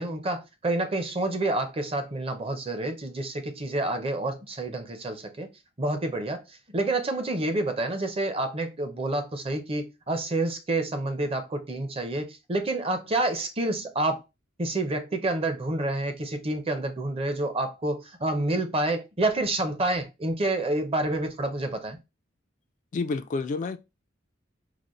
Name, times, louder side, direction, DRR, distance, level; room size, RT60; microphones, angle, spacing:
voice 1, 0.0-5.5 5.8-6.4 6.7-14.2 14.6-22.0, right 2 dB, 30° right, 0.6 m, -28 dB
voice 2, 22.9-23.8, left 4 dB, 40° left, 0.3 m, -29 dB
3.9 x 2.1 x 3.0 m
head